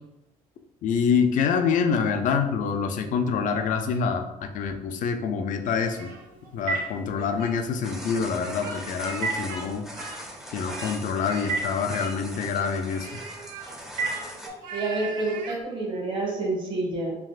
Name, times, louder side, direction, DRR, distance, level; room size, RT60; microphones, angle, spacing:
voice 1, 0.8-6.1 6.5-9.9 10.5-13.2, left 6 dB, 60° left, 5 dB, 0.4 m, -26 dB
Speech, 5.9-6.9 7.1-7.5 8.3-9.7 9.9-11.0 11.3-11.5 11.9-12.5 12.9-15.6, right 4 dB, 70° right, 0.7 m, -40 dB
Telephone, 6.0-14.8, right 4 dB, 90° right, 1.1 m, -37 dB
sound 1, 7.8-14.5, equal, 5° right, 0.5 m, -41 dB
voice 2, 14.7-17.2, right 2 dB, 35° right, -2 dB, 1.1 m, -28 dB
3.4 x 2.3 x 2.4 m, 0.93 s
supercardioid pair, 75°, 15 cm